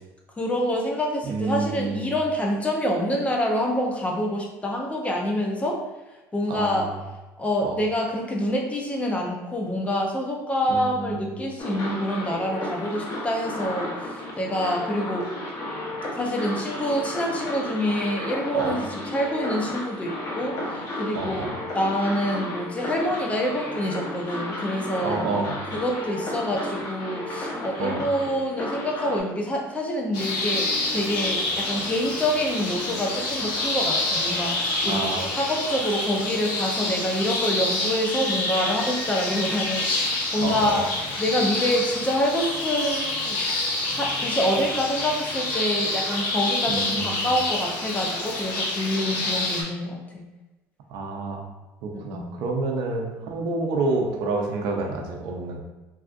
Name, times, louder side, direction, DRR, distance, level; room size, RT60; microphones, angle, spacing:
voice 1, 0.4-5.8 6.3-6.9 7.4-15.2 16.2-21.5 21.7-25.2 25.7-30.7 30.9-40.8 41.2-43.4 43.9-50.2 51.9-52.3, equal, 20° left, 0 dB, 0.6 m, -26 dB
voice 2, 1.3-2.1 6.5-7.0 7.6-7.8 10.7-11.4 18.5-18.8 21.1-21.5 25.0-25.6 27.8-28.0 34.8-35.3 40.4-40.9 46.7-47.3 50.9-51.4 51.8-55.6, right 3 dB, 70° right, 1 dB, 0.6 m, -28 dB
sound 1, 11.6-29.2, left 1 dB, 45° left, 1.0 m, -33 dB
sound 2, 30.1-49.6, left 2 dB, 75° left, 0.9 m, -27 dB
3.4 x 2.7 x 2.5 m, 1.1 s
supercardioid pair, 95°, 7 cm